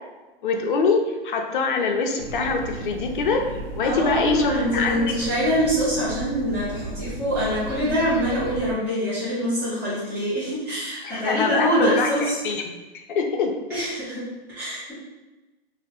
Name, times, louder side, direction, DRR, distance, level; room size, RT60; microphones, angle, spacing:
voice 1, 0.4-4.9 11.0-12.7 13.1-13.5, left 4 dB, 55° left, 3 dB, 0.4 m, -24 dB
sound 1, 2.2-8.7, right 2 dB, 65° right, 0.6 m, -35 dB
voice 2, 3.8-12.4 13.7-14.9, equal, 5° right, -12 dB, 0.6 m, -24 dB
2.2 x 2.0 x 2.8 m, 1.1 s
hypercardioid pair, 155°, 31 cm